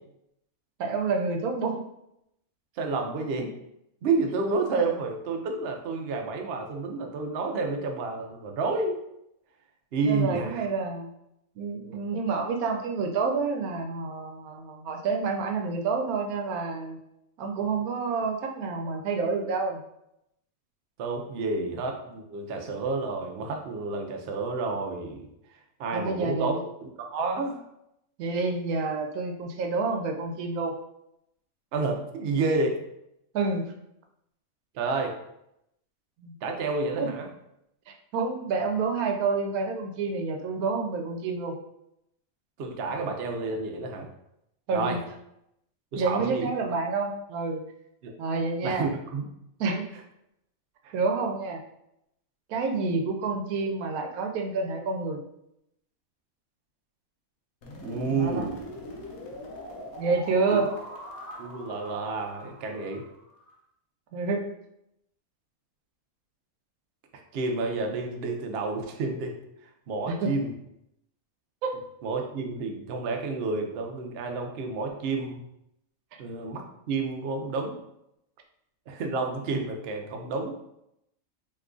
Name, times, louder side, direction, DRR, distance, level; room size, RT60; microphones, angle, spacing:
voice 1, 0.8-1.8 4.7-4.8 10.1-11.1 11.6-17.0 17.4-19.8 25.9-26.7 28.2-30.7 33.3-33.7 36.2-36.3 36.9-37.1 37.9-41.5 44.7-45.0 46.0-47.6 48.2-48.9 49.6-49.9 50.9-51.6 52.5-55.2 58.0-58.5 60.0-60.8 64.1-64.5 70.1-70.4 71.6-71.7, right 4 dB, 85° right, 3 dB, 1.1 m, -28 dB
voice 2, 2.8-3.5 4.0-9.0 9.9-10.7 21.0-25.3 25.8-26.5 26.8-27.6 31.7-32.8 34.7-35.1 36.4-37.3 42.6-44.1 44.7-45.0 45.9-46.5 48.0-48.1 48.6-49.3 50.8-50.9 57.8-58.6 60.5-60.6 61.4-63.0 67.3-69.3 69.9-70.5 72.0-75.4 76.2-77.8 78.9-80.6, right 3 dB, 65° right, 3 dB, 0.6 m, -30 dB
sound 1, 57.6-63.5, left 1 dB, 80° left, 1.1 m, -42 dB
3.0 x 2.3 x 3.6 m, 0.81 s
omnidirectional pair, 1.5 m